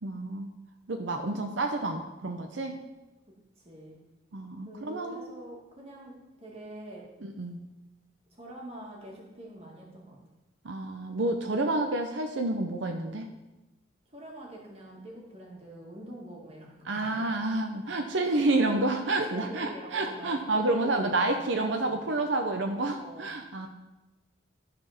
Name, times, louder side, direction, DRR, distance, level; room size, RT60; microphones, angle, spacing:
voice 1, 0.0-0.5 0.9-2.8 4.3-5.3 7.2-7.6 10.6-13.3 16.9-23.7, right 2 dB, 75° right, 4 dB, 0.7 m, -29 dB
voice 2, 3.6-4.0 4.6-7.1 8.3-10.2 14.1-17.2 18.2-18.5 19.3-22.1 22.8-23.3, right 1 dB, 30° right, -2 dB, 2.0 m, -45 dB
12.5 x 4.3 x 5.8 m, 1.1 s
head